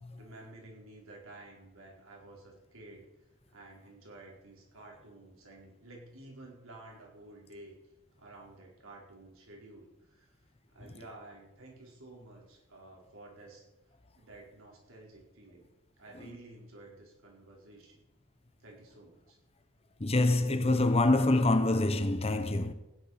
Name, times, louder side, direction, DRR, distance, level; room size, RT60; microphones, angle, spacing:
voice 1, 0.1-3.1 3.5-7.7 8.2-10.3 10.7-13.6 14.1-15.7 16.0-18.0 18.6-19.4, right 2 dB, 70° right, 4.4 m, -52 dB
voice 2, 20.0-22.7, left 2 dB, 30° left, 0.9 m, -26 dB
16.0 x 10.5 x 5.8 m
head